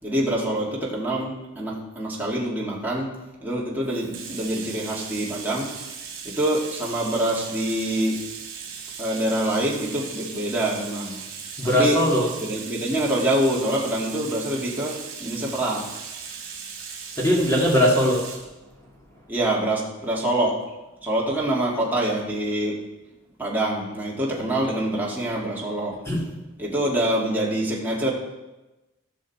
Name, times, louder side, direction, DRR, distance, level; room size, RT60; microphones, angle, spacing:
voice 1, 0.0-3.1 3.4-5.7 6.2-8.2 9.0-11.2 11.6-12.0 12.4-15.8 19.3-20.6 21.0-22.8 23.4-26.0 26.6-28.1, right 1 dB, 10° right, -5 dB, 2.3 m, -25 dB
Bathtub (filling or washing), 3.8-18.5, right 6 dB, 60° right, 2.9 m, -38 dB
voice 2, 11.6-12.3 17.2-18.2 24.3-24.5 26.1-26.2, equal, 15° left, -4 dB, 2.1 m, -20 dB
16.5 x 6.7 x 4.3 m, 1.0 s
head